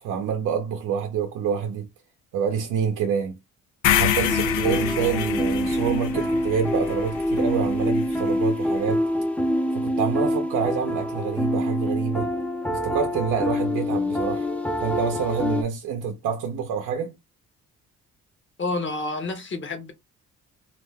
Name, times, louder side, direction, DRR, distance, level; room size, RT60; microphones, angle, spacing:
voice 1, 0.0-1.9 2.3-3.4 3.9-9.1 9.7-12.3 12.7-14.5 14.8-17.1, right 7 dB, 80° right, 0.6 m, -27 dB
sound 1, 3.8-8.0, left 10 dB, 85° left, 0.5 m, -26 dB
sound 2, 4.3-15.6, left 1 dB, 5° left, 0.4 m, -26 dB
voice 2, 18.6-19.9, left 2 dB, 40° left, 0.8 m, -29 dB
2.5 x 2.1 x 3.4 m
cardioid pair, 90°, 30 cm